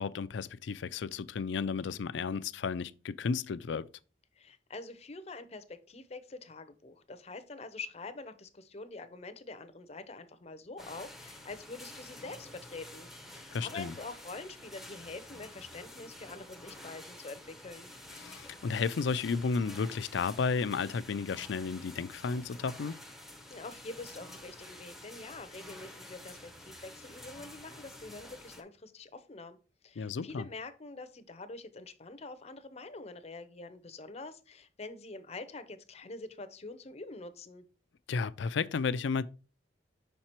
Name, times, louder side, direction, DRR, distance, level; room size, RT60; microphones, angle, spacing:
voice 1, 0.0-3.9 13.5-13.9 18.2-22.9 30.0-30.5 38.1-39.2, left 5 dB, 75° left, 0.4 m, -33 dB
voice 2, 4.4-13.1 13.3-17.9 23.5-29.6 29.8-37.6, left 3 dB, 35° left, 0.6 m, -45 dB
sound 1, 10.8-28.6, left 1 dB, ahead, 0.7 m, -49 dB
5.8 x 4.4 x 4.3 m
head